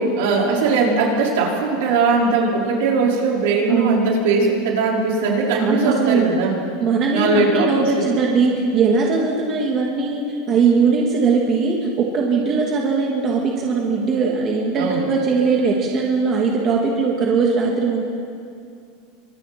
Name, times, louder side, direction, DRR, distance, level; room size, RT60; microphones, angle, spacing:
voice 1, 0.2-6.5 7.1-8.1 14.8-15.1, right 4 dB, 70° right, -3 dB, 5.2 m, -19 dB
voice 2, 3.7-4.2 5.6-6.3 6.8-18.0, right 4 dB, 30° right, -1 dB, 2.4 m, -20 dB
28.5 x 25.0 x 4.5 m, 2.3 s
supercardioid pair, 165°, 0 cm